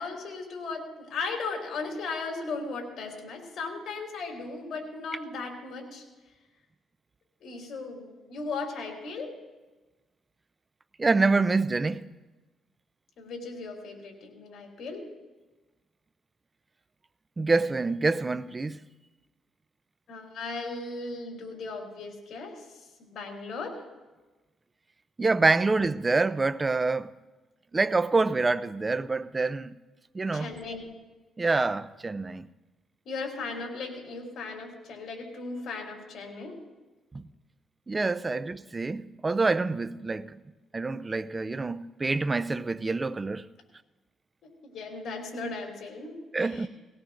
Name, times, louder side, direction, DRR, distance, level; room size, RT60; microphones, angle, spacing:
voice 1, 0.0-6.0 7.4-9.3 13.2-15.0 20.1-22.6 23.0-23.8 30.3-30.9 33.1-36.5 38.3-38.4 44.4-46.7, left 3 dB, 65° left, 3.5 m, -37 dB
voice 2, 11.0-12.1 17.4-18.8 25.2-27.1 27.7-29.7 30.1-30.5 31.4-32.5 37.1-37.2 37.9-40.4 40.7-43.5 46.3-46.7, right 3 dB, 25° right, 0.5 m, -26 dB
19.0 x 17.0 x 2.6 m
cardioid pair, 90°, 0 cm